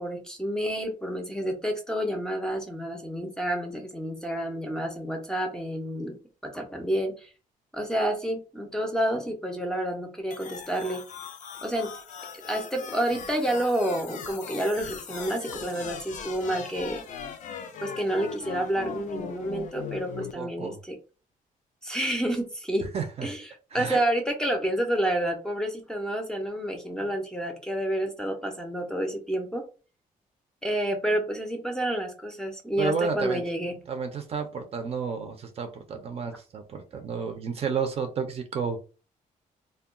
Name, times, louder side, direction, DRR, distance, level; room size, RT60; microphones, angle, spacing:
voice 1, 0.0-6.2 6.4-7.3 7.7-11.0 11.6-11.9 12.4-17.0 17.8-21.0 21.8-22.9 23.2-29.6 30.6-33.8, right 1 dB, 5° left, 3 dB, 0.5 m, -29 dB
sound 1, 10.3-20.3, left 7 dB, 60° left, 0.4 m, -39 dB
voice 2, 20.3-20.8 22.9-23.3 23.7-24.0 32.8-33.4 33.9-38.8, right 5 dB, 45° right, 6 dB, 0.5 m, -31 dB
2.2 x 2.2 x 3.6 m, 0.34 s
cardioid pair, 155°, 14 cm